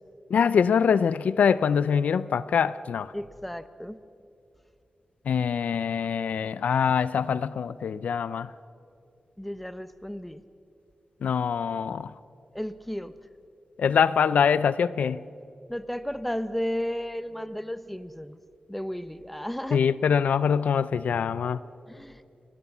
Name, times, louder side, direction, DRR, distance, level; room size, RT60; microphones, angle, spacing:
voice 1, 0.3-3.1 5.3-8.5 11.2-12.1 13.8-15.2 19.7-21.6, left 7 dB, 85° left, 0.5 m, -24 dB
voice 2, 3.1-4.0 9.4-10.4 12.5-13.1 15.7-18.4 18.7-19.8 21.9-22.2, equal, 5° left, 0.8 m, -33 dB
30.0 x 17.5 x 7.2 m
wide cardioid pair, 115°, 2 cm